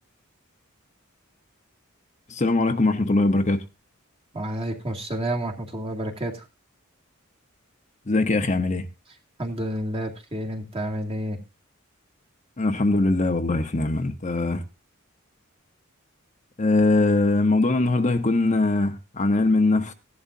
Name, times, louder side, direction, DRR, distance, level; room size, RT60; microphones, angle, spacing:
voice 1, 2.3-3.6 8.1-8.9 12.6-14.6 16.6-19.9, left 2 dB, 35° left, 0.9 m, -21 dB
voice 2, 4.3-6.5 9.4-11.4, right 1 dB, 25° right, 2.2 m, -30 dB
16.0 x 11.0 x 2.7 m
head